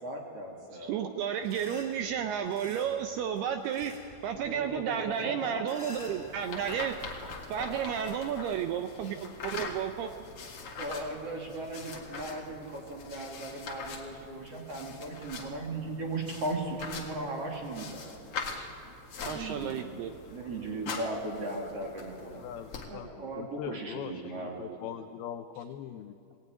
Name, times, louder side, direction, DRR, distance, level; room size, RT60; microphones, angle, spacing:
voice 1, 0.0-1.0 4.3-5.6 7.7-7.8 9.6-9.7 10.8-18.2 18.5-18.7 19.3-19.8 20.3-22.4 22.9-24.8, right 2 dB, 40° right, 0 dB, 2.9 m, -37 dB
voice 2, 0.7-4.0 4.2-7.0 7.5-10.1 19.2-20.1, right 8 dB, 75° right, 6 dB, 2.4 m, -32 dB
sound 1, 1.4-6.8, left 2 dB, 15° left, 3.1 m, -52 dB
sound 2, 6.0-22.9, left 4 dB, 55° left, 1.6 m, -43 dB
voice 3, 22.3-23.1 23.4-26.4, left 10 dB, 85° left, 8 dB, 2.2 m, -42 dB
20.5 x 17.5 x 9.4 m, 2.5 s
omnidirectional pair, 5.2 m